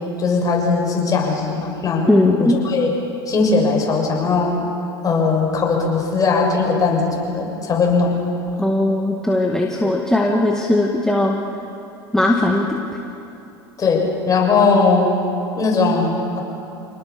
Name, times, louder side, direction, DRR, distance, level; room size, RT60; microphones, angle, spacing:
voice 1, 0.2-2.1 2.4-2.9 3.3-4.5 5.0-8.2 13.8-15.1 15.5-16.4, left 4 dB, 30° left, 0 dB, 6.8 m, -19 dB
voice 2, 2.0-2.6 8.6-11.3 12.1-12.8, left 1 dB, 5° left, -1 dB, 2.1 m, -18 dB
28.0 x 19.5 x 7.1 m, 2.8 s
hypercardioid pair, 95°, 13 cm